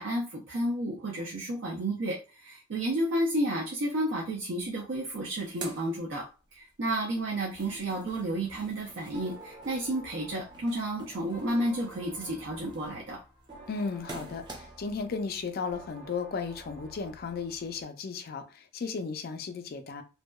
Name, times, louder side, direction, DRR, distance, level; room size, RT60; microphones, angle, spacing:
voice 1, 0.0-6.2 6.5-13.2, right 1 dB, 70° right, -2 dB, 0.5 m, -31 dB
sound 1, 4.6-4.7 5.0-6.7 7.1-15.0, right 2 dB, 20° right, 0.4 m, -48 dB
sound 2, 9.1-17.8, right 1 dB, 45° right, 1.3 m, -50 dB
voice 2, 13.7-20.0, left 5 dB, 50° left, 8 dB, 0.4 m, -35 dB
2.7 x 2.1 x 2.2 m, 0.33 s
head